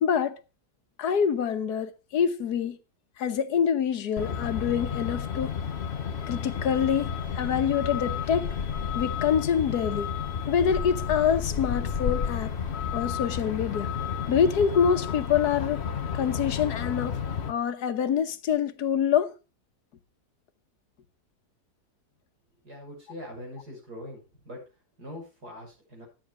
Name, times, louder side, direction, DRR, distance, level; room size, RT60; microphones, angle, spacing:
voice 1, 0.0-0.4 1.0-2.8 3.2-5.6 6.3-8.5 8.9-10.1 10.5-12.5 12.9-13.9 14.3-15.8 16.1-17.2 17.5-19.3, left 7 dB, 80° left, 1.6 m, -26 dB
Truck, 4.2-17.5, left 7 dB, 45° left, 1.3 m, -31 dB
voice 2, 22.6-24.6 25.0-26.0, left 1 dB, 85° right, 7.1 m, -42 dB
12.5 x 9.1 x 4.8 m
omnidirectional pair, 1.7 m